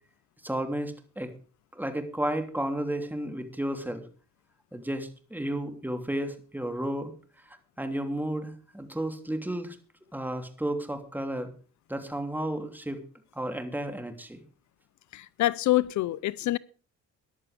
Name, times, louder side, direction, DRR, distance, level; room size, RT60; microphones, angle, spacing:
voice 1, 0.4-1.3 1.7-4.0 4.7-7.1 7.8-9.8 10.1-11.5 11.9-13.0 13.3-14.4, right 1 dB, 5° right, 3.0 m, -32 dB
voice 2, 15.1-16.6, left 16 dB, 70° left, 0.6 m, -26 dB
14.5 x 11.0 x 5.1 m
cardioid pair, 90°, 30 cm